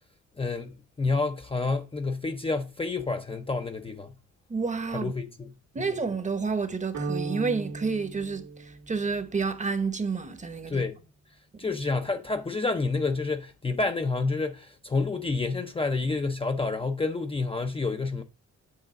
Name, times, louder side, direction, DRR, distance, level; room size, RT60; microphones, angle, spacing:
voice 1, 0.4-4.1 4.9-5.3 5.8-5.9 10.7-11.0 11.6-18.2, left 3 dB, 20° left, 0.5 m, -29 dB
voice 2, 4.5-5.1 5.7-10.8 11.5-11.6, right 4 dB, 25° right, 0.9 m, -30 dB
sound 1, 6.9-9.3, right 3 dB, 80° right, 2.0 m, -36 dB
7.7 x 3.7 x 6.2 m
wide cardioid pair, 135°, 29 cm